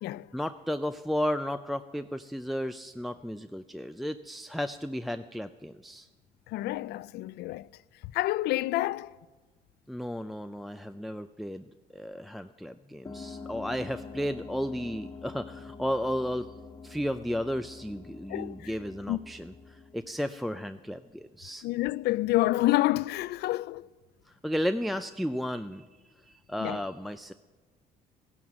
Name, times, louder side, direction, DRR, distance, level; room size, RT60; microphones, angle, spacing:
voice 1, 0.3-6.1 9.9-11.6 11.9-16.5 16.8-21.7 24.3-25.9 26.2-27.3, equal, ahead, 0.4 m, -33 dB
voice 2, 6.5-7.7 8.1-9.1 18.3-18.7 19.1-19.2 21.6-23.9 26.6-26.8, left 17 dB, 75° left, 0.4 m, -28 dB
sound 1, 13.1-21.2, left 4 dB, 20° left, 1.5 m, -46 dB
16.0 x 11.0 x 7.4 m
cardioid pair, 110°, 17 cm